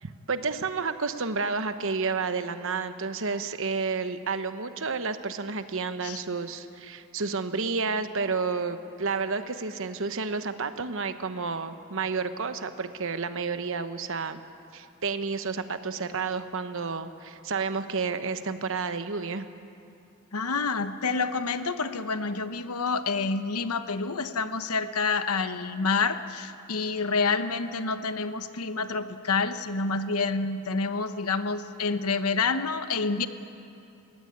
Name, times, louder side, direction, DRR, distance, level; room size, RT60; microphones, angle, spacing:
voice 1, 0.0-14.4 14.7-19.5, right 4 dB, 60° right, 10 dB, 1.0 m, -30 dB
voice 2, 20.3-33.3, left 4 dB, 80° left, 10 dB, 1.0 m, -28 dB
21.5 x 16.0 x 9.6 m, 2.6 s
head